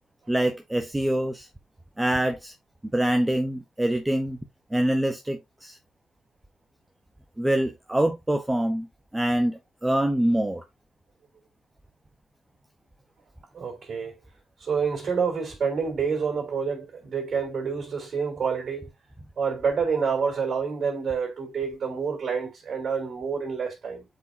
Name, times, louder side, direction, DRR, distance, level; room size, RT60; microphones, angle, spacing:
voice 1, 0.3-1.5 2.0-2.5 2.9-4.4 4.7-5.8 7.4-8.9 9.1-10.6, right 1 dB, 10° right, 0.9 m, -25 dB
voice 2, 13.5-14.2 14.6-18.9 19.4-24.0, right 6 dB, 50° right, 3.8 m, -28 dB
7.8 x 4.7 x 2.7 m
cardioid pair, 90°, 0 cm